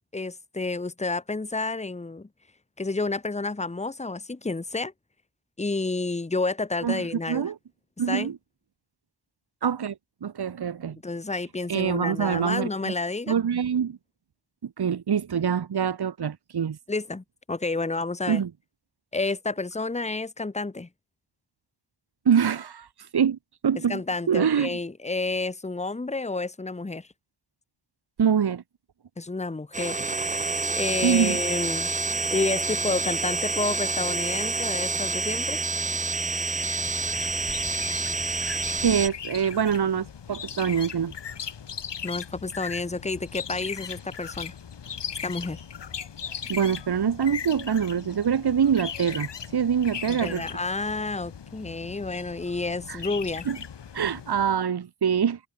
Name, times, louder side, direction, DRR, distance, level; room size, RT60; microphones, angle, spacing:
voice 1, 0.1-2.3 2.8-4.9 5.6-7.5 8.1-8.3 11.0-13.4 16.9-18.4 19.1-20.9 23.9-27.1 29.2-31.9 32.3-35.6 42.0-44.5 45.2-45.6 50.1-53.5, left 3 dB, 15° left, 1.5 m, -30 dB
voice 2, 6.8-7.6 8.0-8.4 9.6-11.0 11.7-12.9 13.3-14.0 14.6-16.8 18.3-18.5 22.3-22.9 23.1-23.4 23.6-24.0 24.3-24.7 28.2-28.6 31.0-31.4 38.8-41.1 46.5-50.5 52.9-53.0 53.5-53.6 53.9-55.4, right 7 dB, 65° right, 2.1 m, -25 dB
sound 1, 29.7-39.1, right 3 dB, 20° right, 0.8 m, -28 dB
sound 2, 36.6-54.6, left 7 dB, 75° left, 4.3 m, -39 dB
wide cardioid pair, 145°, 42 cm